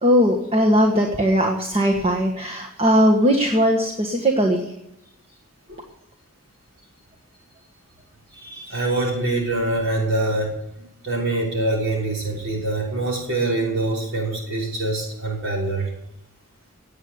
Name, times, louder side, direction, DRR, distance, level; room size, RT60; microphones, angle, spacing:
voice 1, 0.0-4.7, equal, 25° right, 2 dB, 1.6 m, -19 dB
voice 2, 8.3-15.9, right 2 dB, 60° right, -2 dB, 6.0 m, -25 dB
18.5 x 8.4 x 8.1 m, 0.81 s
head